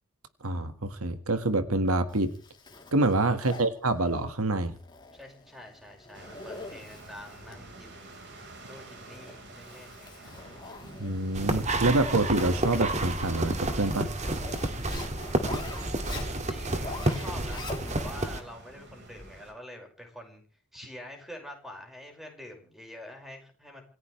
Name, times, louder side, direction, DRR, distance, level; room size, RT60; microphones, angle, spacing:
voice 1, 0.4-2.3 2.9-4.7 11.0-14.1, right 2 dB, 75° right, 9 dB, 1.7 m, -26 dB
Zipper (clothing), 2.1-18.3, left 3 dB, 20° left, 3.1 m, -46 dB
voice 2, 5.1-10.3 16.3-20.4 20.7-23.8, left 1 dB, ahead, 3 dB, 5.4 m, -46 dB
sound 1, 6.1-19.5, right 2 dB, 50° right, 4.8 m, -49 dB
sound 2, 11.3-18.4, right 1 dB, 30° right, 2.1 m, -30 dB
27.0 x 16.5 x 3.3 m, 0.42 s
head